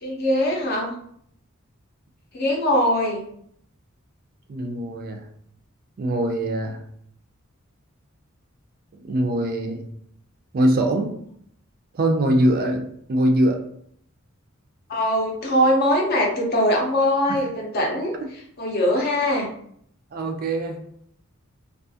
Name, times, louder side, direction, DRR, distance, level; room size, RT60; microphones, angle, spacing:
voice 1, 0.0-0.9 2.3-3.2 14.9-18.1 18.6-19.5, left 1 dB, 45° left, 0 dB, 0.6 m, -21 dB
voice 2, 4.5-5.2 6.0-6.8 9.0-9.9 10.5-11.1 11.9-13.6 17.3-17.4 18.2-18.3 20.1-20.8, right 1 dB, 45° right, 3 dB, 0.4 m, -22 dB
2.3 x 2.3 x 2.7 m, 0.67 s
head